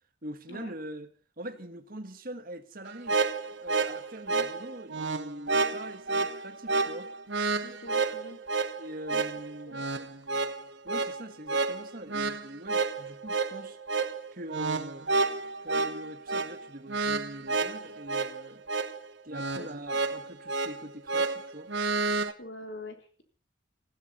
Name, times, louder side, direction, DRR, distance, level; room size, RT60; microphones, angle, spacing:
voice 1, 0.2-1.1 1.4-3.2 3.6-7.1 8.8-9.8 10.8-13.8 14.3-15.1 15.6-18.6 19.2-21.7, right 1 dB, 50° right, 8 dB, 1.6 m, -43 dB
sound 1, 2.9-22.3, right 3 dB, 70° right, 1.1 m, -30 dB
voice 2, 7.6-8.4 9.1-9.2 9.7-9.8 19.6-19.7 22.4-23.2, left 1 dB, 65° left, 4 dB, 3.7 m, -44 dB
19.0 x 16.5 x 4.3 m, 0.41 s
head